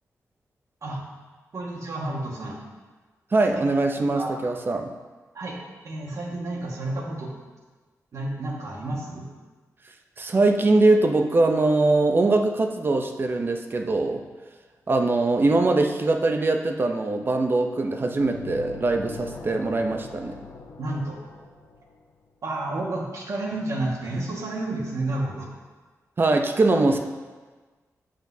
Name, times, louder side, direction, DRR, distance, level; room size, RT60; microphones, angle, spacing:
voice 1, 1.5-2.6 3.5-3.6 4.0-4.3 5.3-5.6 5.8-7.3 8.1-9.3 20.8-21.2 22.4-25.5, right 2 dB, 60° right, -2 dB, 1.6 m, -30 dB
voice 2, 3.3-4.9 10.2-14.2 14.9-20.3 26.2-27.0, right 2 dB, 35° right, 5 dB, 0.6 m, -22 dB
sound 1, 18.2-22.0, left 4 dB, 80° left, 0.7 m, -41 dB
8.6 x 8.0 x 2.7 m, 1.3 s
wide cardioid pair, 110°, 6 cm